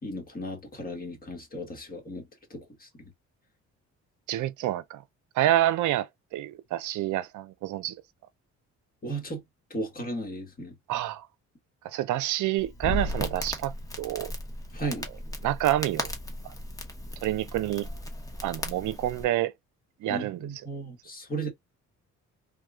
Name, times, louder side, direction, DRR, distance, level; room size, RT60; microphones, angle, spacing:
voice 1, 0.0-3.0 9.0-9.4 9.7-10.7 14.7-15.1 20.0-21.5, right 1 dB, 30° left, 1.6 m, -35 dB
voice 2, 4.3-5.0 5.4-7.9 10.9-11.3 11.9-14.3 15.4-16.1 17.2-17.9 18.4-19.5 20.0-20.5, right 13 dB, 80° right, 0.5 m, -28 dB
Crackle, 12.6-19.2, left 1 dB, 10° left, 1.0 m, -36 dB
3.4 x 2.3 x 2.3 m
cardioid pair, 90°, 30 cm